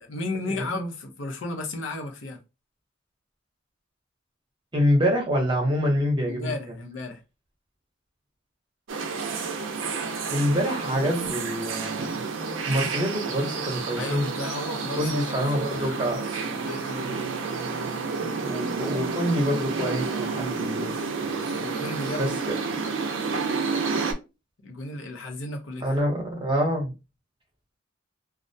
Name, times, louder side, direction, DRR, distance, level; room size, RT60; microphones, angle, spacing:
voice 1, 0.0-2.4 6.3-7.2 14.0-15.4 15.7-17.3 21.2-22.4 24.6-26.0, left 2 dB, 80° left, 0.7 m, -34 dB
voice 2, 0.5-0.8 4.7-6.5 10.3-12.2 12.7-14.3 15.0-16.2 18.2-20.9 22.2-22.5 25.8-26.9, equal, 25° right, 0.7 m, -26 dB
sound 1, 8.9-24.1, right 4 dB, 75° right, 0.5 m, -30 dB
2.3 x 2.1 x 2.6 m
head